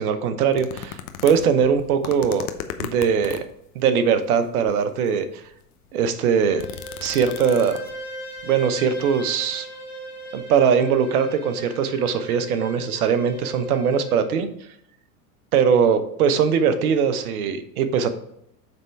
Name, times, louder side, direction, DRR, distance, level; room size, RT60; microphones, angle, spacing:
voice 1, 0.0-2.5 2.8-3.4 3.7-5.4 5.9-6.6 7.0-7.8 8.4-9.7 10.3-14.5 15.5-18.1, right 7 dB, 70° right, 10 dB, 1.0 m, -21 dB
sound 1, 0.5-3.6 4.4-4.9 5.5-5.6 5.8-8.0 8.4-8.5, left 10 dB, 75° left, 0.8 m, -36 dB
Bowed string instrument, 6.0-14.3, right 1 dB, 90° left, 2.7 m, -38 dB
7.9 x 3.6 x 4.5 m, 0.75 s
hypercardioid pair, 90°, 45 cm